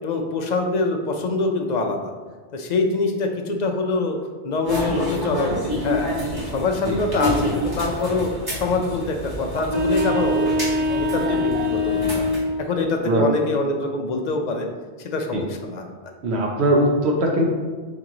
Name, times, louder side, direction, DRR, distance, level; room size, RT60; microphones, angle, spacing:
voice 1, 0.0-2.1 2.5-4.2 4.4-6.1 6.5-12.2 12.6-14.7 15.0-15.8, left 3 dB, 55° left, 3 dB, 0.5 m, -24 dB
sound 1, 4.6-12.4, equal, 20° right, 1.1 m, -28 dB
sound 2, 9.6-12.6, left 1 dB, 45° right, 0.7 m, -23 dB
voice 2, 16.2-17.4, right 1 dB, 75° right, -1 dB, 1.0 m, -20 dB
4.5 x 3.0 x 3.7 m, 1.4 s
omnidirectional pair, 1.1 m